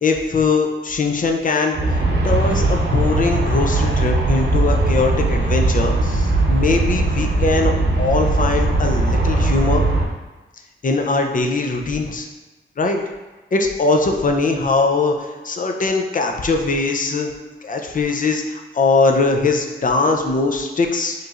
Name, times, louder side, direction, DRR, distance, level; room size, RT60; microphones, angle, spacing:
voice 1, 0.0-1.8 2.2-9.9 10.8-12.3 12.8-13.0 13.5-17.3 17.6-21.1, left 3 dB, 40° left, 3 dB, 0.5 m, -20 dB
Aircraft, 1.7-10.1, right 2 dB, 55° right, 0.7 m, -19 dB
4.9 x 3.1 x 2.4 m, 1.2 s
wide cardioid pair, 95°, 21 cm